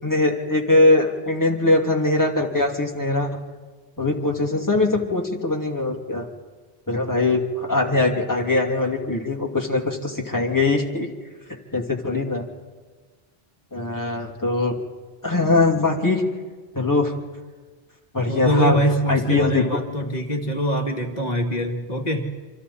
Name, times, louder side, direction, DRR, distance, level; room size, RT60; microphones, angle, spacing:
voice 1, 0.0-3.3 4.0-6.3 6.9-11.1 11.5-12.4 13.7-14.7 15.2-16.2 16.7-17.1 18.1-18.8 19.1-19.6, left 2 dB, 20° left, 0 dB, 2.7 m, -21 dB
voice 2, 18.3-22.3, equal, 40° left, 2 dB, 2.3 m, -24 dB
28.0 x 26.5 x 4.3 m, 1.4 s
omnidirectional pair, 1.1 m